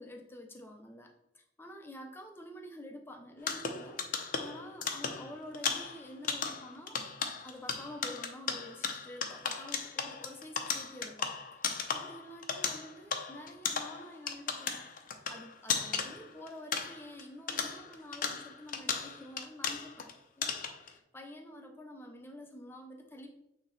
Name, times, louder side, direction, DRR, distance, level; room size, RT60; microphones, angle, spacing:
voice 1, 0.0-7.0 7.4-14.9 15.3-20.1 20.4-23.3, left 1 dB, 15° left, 3 dB, 0.8 m, -48 dB
sound 1, 3.4-17.2 17.5-20.1 20.4-20.9, left 6 dB, 50° left, 0.7 m, -36 dB
8.9 x 3.1 x 4.2 m, 0.80 s
head